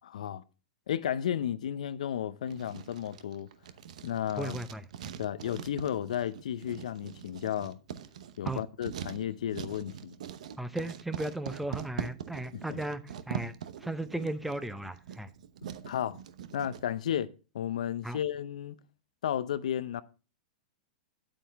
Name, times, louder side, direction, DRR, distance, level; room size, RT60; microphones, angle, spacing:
voice 1, 0.0-0.4 0.9-3.5 4.0-4.6 5.2-7.8 8.4-10.1 12.5-12.8 15.9-16.2 16.5-17.3 17.5-18.8 19.2-20.0, left 10 dB, 75° left, 0.6 m, -33 dB
Writing, 2.5-16.8, right 9 dB, 70° right, 0.9 m, -42 dB
voice 2, 4.4-4.8 8.4-8.6 10.6-13.6 13.8-15.3 18.0-18.2, right 1 dB, 5° right, 0.7 m, -36 dB
9.0 x 8.7 x 3.4 m
hypercardioid pair, 110°, 4 cm